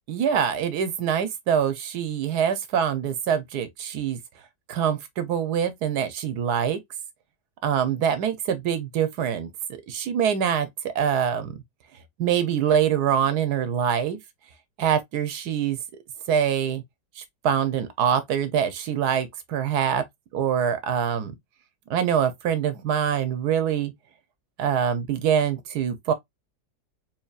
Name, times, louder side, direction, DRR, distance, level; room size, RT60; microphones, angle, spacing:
voice 1, 0.1-4.2 4.7-6.8 7.6-9.5 9.9-11.5 12.2-14.2 14.8-15.8 16.3-16.8 17.2-20.0 20.3-21.3 21.9-23.9 24.6-26.1, right 8 dB, 70° right, 1.2 m, -24 dB
4.6 x 2.9 x 2.3 m
omnidirectional pair, 1.9 m